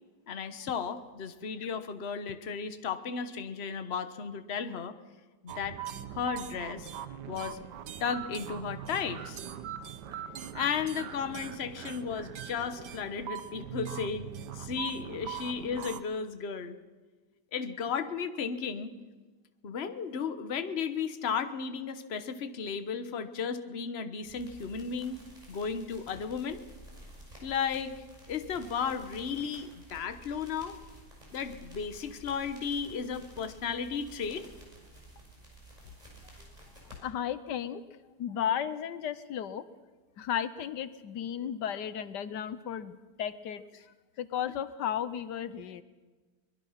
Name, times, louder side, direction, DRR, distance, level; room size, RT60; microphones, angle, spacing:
voice 1, 0.3-5.0 5.4-5.8 6.1-6.9 7.3-7.6 8.0-9.4 10.5-14.3 14.5-16.8 17.5-18.9 19.6-25.2 25.5-26.6 27.4-27.9 28.3-30.8 31.3-34.5, left 6 dB, 40° left, 10 dB, 1.3 m, -34 dB
sound 1, 5.5-16.0, right 10 dB, 85° right, 1.5 m, -41 dB
sound 2, 24.2-37.0, right 1 dB, 20° right, 6.4 m, -52 dB
voice 2, 37.0-39.6 40.2-43.6 44.2-45.8, left 9 dB, 90° left, 14 dB, 1.5 m, -34 dB
23.0 x 21.5 x 5.8 m, 1.3 s
omnidirectional pair, 1.8 m